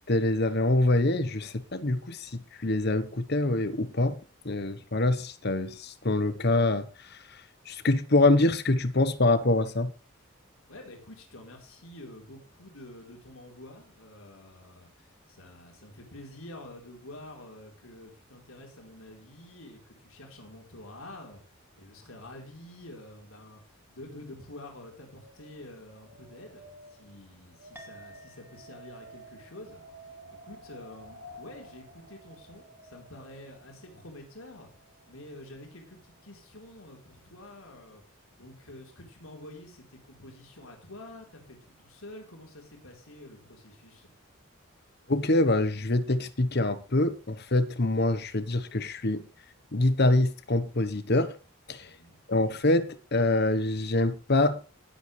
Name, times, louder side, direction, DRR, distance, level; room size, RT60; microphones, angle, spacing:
voice 1, 0.1-4.2 4.4-7.2 7.7-9.9 45.1-49.2 49.7-51.3 51.7-51.9 52.3-54.6, left 2 dB, 50° left, 1.1 m, -25 dB
voice 2, 10.7-34.7 35.1-38.0 38.4-44.1 51.8-52.2, left 1 dB, 75° left, 4.2 m, -48 dB
Wind, 24.5-33.7, left 2 dB, 90° right, 6.8 m, -54 dB
Chink clink, 27.7-36.5, right 3 dB, 10° right, 2.4 m, -54 dB
19.0 x 8.1 x 3.3 m
head